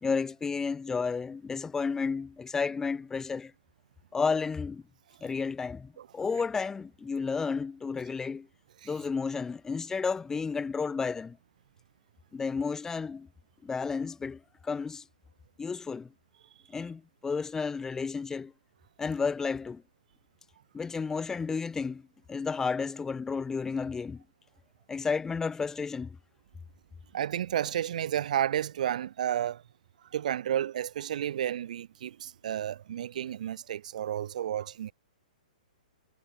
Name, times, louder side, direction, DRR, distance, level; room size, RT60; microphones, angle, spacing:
voice 1, 0.0-3.5 4.1-4.8 5.2-8.5 8.8-11.4 12.3-13.3 13.6-15.0 15.6-16.1 16.7-18.5 19.0-19.8 20.7-22.0 22.3-24.2 24.9-26.2, left 5 dB, 10° left, 2.9 m, -32 dB
voice 2, 27.1-29.6 30.1-34.9, right 10 dB, 60° right, 2.9 m, -31 dB
hypercardioid pair, 125°, 5 cm